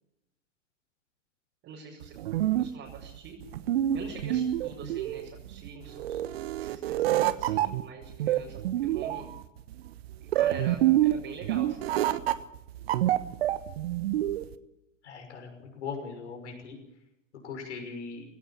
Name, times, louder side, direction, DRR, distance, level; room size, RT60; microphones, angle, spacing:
voice 1, 1.6-2.1 2.6-3.4 3.9-6.2 6.6-9.3 10.3-11.9, right 5 dB, 35° right, -3 dB, 5.7 m, -44 dB
sound 1, 2.0-14.5, right 13 dB, 55° right, 1.3 m, -27 dB
voice 2, 15.0-16.8 17.4-18.2, left 5 dB, 65° left, 3 dB, 6.1 m, -39 dB
19.5 x 17.0 x 8.6 m, 0.87 s
figure-of-eight pair, 100°, 37 cm